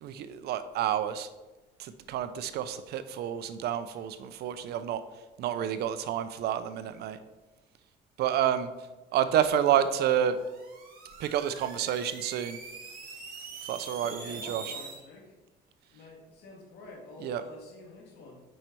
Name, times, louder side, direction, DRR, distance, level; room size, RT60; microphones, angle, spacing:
voice 1, 0.0-1.3 1.8-5.0 5.4-7.2 8.2-8.7 9.1-10.4 11.2-12.6 13.6-14.7 17.2-17.4, right 10 dB, 75° right, 12 dB, 0.7 m, -29 dB
sound 1, 10.2-15.0, right 4 dB, 55° right, 2.3 m, -44 dB
voice 2, 14.0-15.3 15.9-18.4, left 2 dB, 75° left, 0 dB, 2.3 m, -48 dB
7.7 x 5.5 x 4.7 m, 1.2 s
cardioid pair, 110°, 17 cm